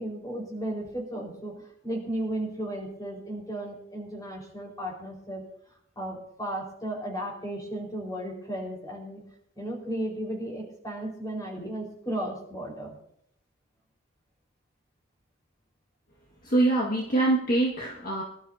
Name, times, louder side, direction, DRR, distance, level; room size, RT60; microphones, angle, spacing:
voice 1, 0.0-5.4 5.9-9.2 9.5-13.0, right 1 dB, 15° left, -1 dB, 4.8 m, -34 dB
voice 2, 16.4-18.2, right 2 dB, 40° left, -3 dB, 1.9 m, -24 dB
24.5 x 12.0 x 2.8 m, 0.71 s
head